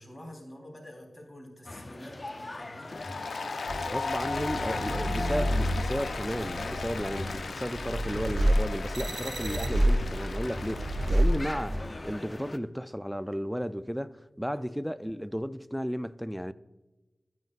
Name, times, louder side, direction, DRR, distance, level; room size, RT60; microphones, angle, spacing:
voice 1, 0.0-3.1 14.5-14.6, left 1 dB, 20° left, 3.7 m, -48 dB
sound 1, 1.6-12.6, left 2 dB, 40° left, 0.6 m, -42 dB
Applause, 2.8-11.6, left 4 dB, 90° left, 0.5 m, -37 dB
sound 2, 3.7-12.0, right 1 dB, 85° right, 0.9 m, -29 dB
voice 2, 3.9-16.5, equal, ahead, 0.4 m, -34 dB
13.0 x 9.4 x 2.5 m
cardioid pair, 50°, 0 cm